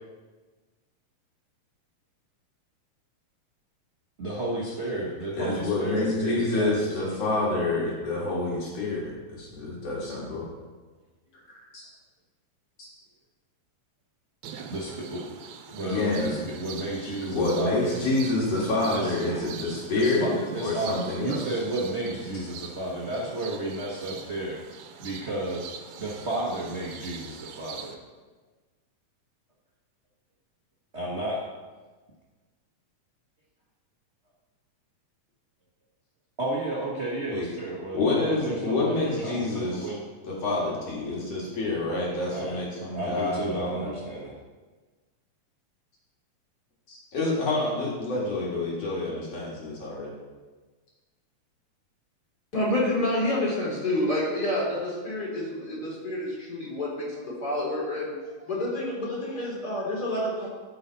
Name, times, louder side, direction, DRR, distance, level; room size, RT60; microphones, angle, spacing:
voice 1, 4.2-7.1 14.7-15.2 15.7-18.0 18.9-19.4 19.7-24.6 25.0-25.7 26.0-28.0 30.9-31.4 36.4-40.0 42.3-42.6 42.9-44.3, right 1 dB, 55° right, -4 dB, 0.7 m, -32 dB
voice 2, 5.3-10.5 11.5-11.8 12.8-12.9 15.8-16.3 17.2-20.3 20.6-21.4 37.3-37.5 37.9-39.9 40.2-43.9 46.9-50.1, left 2 dB, 60° left, -4 dB, 3.1 m, -28 dB
sound 1, 14.4-27.9, right 7 dB, 80° right, 2.0 m, -43 dB
voice 3, 52.5-60.5, left 1 dB, 35° left, -5 dB, 3.5 m, -28 dB
13.5 x 5.8 x 4.1 m, 1.3 s
omnidirectional pair, 3.3 m